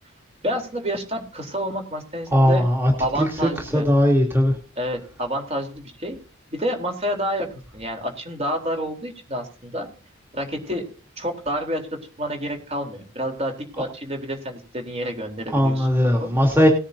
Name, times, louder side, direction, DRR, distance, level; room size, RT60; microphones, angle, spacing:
voice 1, 0.4-2.7 3.0-3.9 4.8-6.2 6.5-9.9 10.3-10.9 11.2-11.9 12.2-15.9 16.2-16.3, equal, 30° right, 3 dB, 3.7 m, -29 dB
voice 2, 2.3-2.9 3.2-3.3 3.7-4.5 15.5-16.7, equal, 10° right, 0 dB, 3.1 m, -18 dB
19.5 x 10.0 x 2.8 m, 0.37 s
head